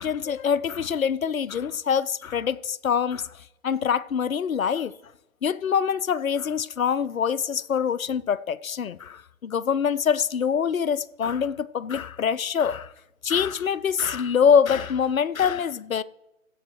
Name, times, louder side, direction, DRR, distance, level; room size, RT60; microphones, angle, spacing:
voice 1, 0.0-3.3 3.6-4.9 5.4-12.9 13.2-16.0, left 7 dB, 85° left, 0.5 m, -24 dB
15.5 x 7.8 x 3.2 m
figure-of-eight pair, 130°, 40 cm